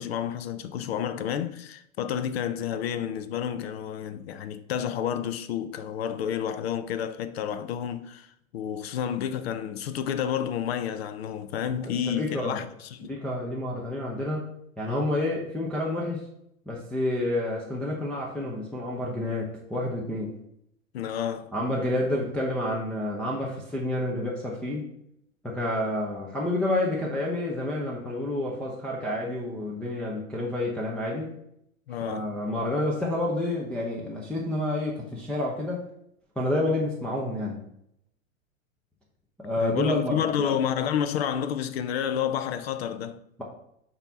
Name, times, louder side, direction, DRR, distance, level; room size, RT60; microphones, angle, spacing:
voice 1, 0.0-12.6 12.9-13.1 20.9-21.5 31.9-32.3 39.6-43.2, left 9 dB, 50° left, 0.5 m, -30 dB
voice 2, 11.8-12.6 13.0-14.5 14.8-16.3 16.7-20.3 21.5-24.9 25.4-31.3 31.9-35.8 36.4-37.6 39.4-40.5, left 1 dB, 5° left, 0.6 m, -29 dB
6.9 x 2.8 x 5.3 m
figure-of-eight pair, 100°, 41 cm